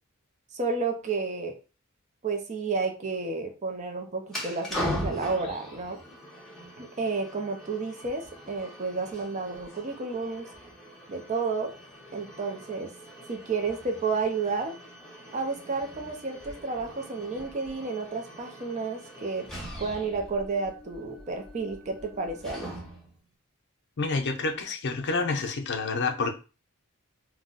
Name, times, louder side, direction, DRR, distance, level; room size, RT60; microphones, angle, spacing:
voice 1, 0.5-1.6 2.2-6.0 6.8-10.5 11.1-11.7 12.1-12.9 13.3-14.8 15.3-19.5 19.8-22.7, right 4 dB, 35° right, 0.4 m, -31 dB
sound 1, 4.3-23.2, equal, ahead, 0.7 m, -41 dB
voice 2, 24.0-26.3, left 3 dB, 55° left, 0.5 m, -28 dB
2.4 x 2.1 x 3.7 m
head